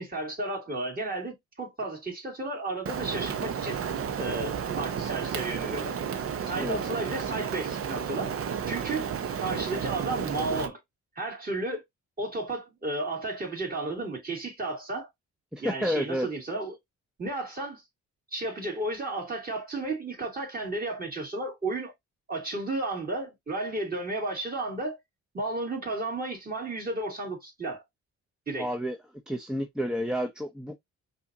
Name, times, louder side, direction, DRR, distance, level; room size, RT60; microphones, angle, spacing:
voice 1, 0.0-3.8 4.2-6.0 6.5-8.3 8.7-9.1 9.4-10.8 11.2-11.8 12.2-15.1 15.6-16.8 17.2-17.8 18.3-21.9 22.3-25.0 25.3-27.8 28.5-28.7, right 2 dB, 30° right, 2.6 m, -33 dB
Rain, 2.8-10.7, right 7 dB, 50° right, 0.7 m, -32 dB
voice 2, 15.5-16.3 28.6-29.0 29.3-30.8, equal, 5° right, 0.6 m, -30 dB
5.5 x 2.7 x 2.6 m
cardioid pair, 90°, 30 cm